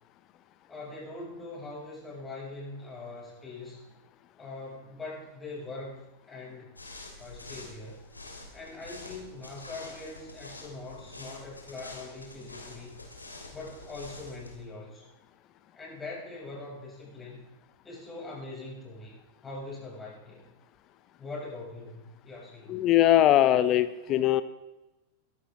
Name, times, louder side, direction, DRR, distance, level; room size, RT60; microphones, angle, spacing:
voice 1, 0.7-4.0 4.4-6.7 7.2-8.0 8.5-13.0 13.5-15.1 15.7-17.4 17.8-19.2 19.4-20.5 21.2-22.9, left 2 dB, 15° left, -4 dB, 7.0 m, -42 dB
sound 1, 6.8-14.6, left 2 dB, 80° left, 3.0 m, -46 dB
voice 2, 22.7-24.4, left 13 dB, 35° left, 13 dB, 0.9 m, -21 dB
22.5 x 12.0 x 3.8 m, 1.0 s
figure-of-eight pair, 90°, 0 cm